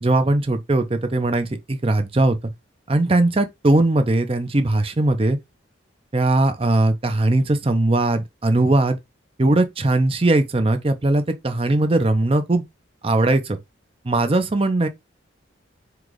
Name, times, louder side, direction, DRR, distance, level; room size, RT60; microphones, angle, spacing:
voice 1, 0.0-2.3 2.9-5.4 6.1-9.0 9.4-12.6 13.0-13.6 14.0-14.9, right 2 dB, 30° right, 0.5 m, -19 dB
4.7 x 2.4 x 3.8 m
head